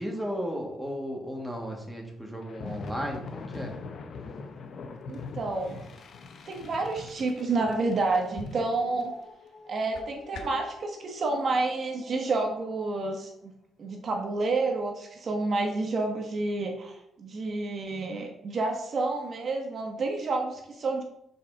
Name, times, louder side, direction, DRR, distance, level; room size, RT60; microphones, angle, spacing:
voice 1, 0.0-3.7, equal, ahead, 0 dB, 1.6 m, -34 dB
sound 1, 2.4-13.0, left 4 dB, 55° left, 0.7 m, -44 dB
voice 2, 5.1-5.8 6.5-9.1 9.7-13.5 13.8-21.0, right 3 dB, 45° right, 2 dB, 1.1 m, -29 dB
sound 2, 8.3-10.8, left 2 dB, 85° left, 1.2 m, -46 dB
5.4 x 4.1 x 6.0 m, 0.80 s
cardioid pair, 115°, 0 cm